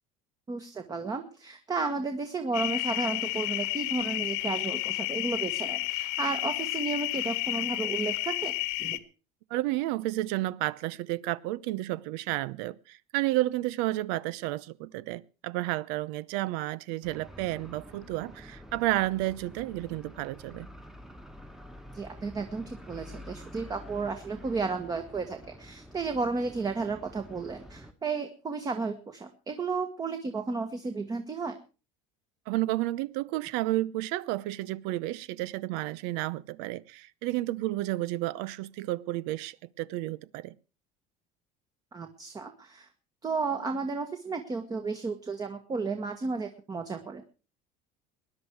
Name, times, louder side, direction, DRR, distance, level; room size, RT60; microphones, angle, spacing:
voice 1, 0.5-8.5 8.8-9.0 21.9-31.6 41.9-42.9 43.2-47.3, right 4 dB, 20° right, 1.5 m, -33 dB
sound 1, 2.5-9.0, left 20 dB, 80° left, 1.3 m, -31 dB
voice 2, 9.5-20.7 32.5-40.6, right 17 dB, 80° right, 0.7 m, -31 dB
sound 2, 17.0-27.9, equal, ahead, 1.4 m, -48 dB
19.5 x 11.0 x 4.6 m
cardioid pair, 130°, 17 cm